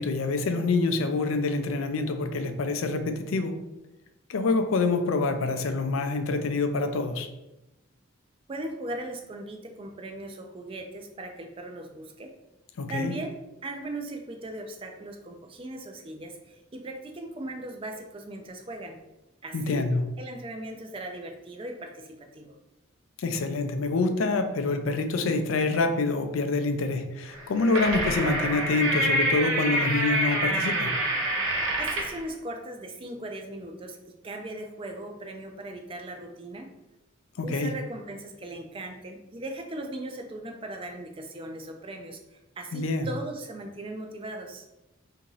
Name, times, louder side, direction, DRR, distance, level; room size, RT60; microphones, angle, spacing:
voice 1, 0.0-3.6 4.3-7.3 12.8-13.1 19.5-20.0 23.2-31.0 37.4-37.7 42.7-43.1, left 3 dB, 80° left, 0.4 m, -26 dB
voice 2, 8.5-12.3 12.9-13.4 13.6-19.0 19.4-19.9 20.2-22.5 31.8-34.0 34.2-36.7 37.4-44.7, right 1 dB, 25° right, 0.4 m, -38 dB
sound 1, 27.3-32.2, right 1 dB, 80° right, 0.8 m, -26 dB
2.9 x 2.6 x 3.8 m
head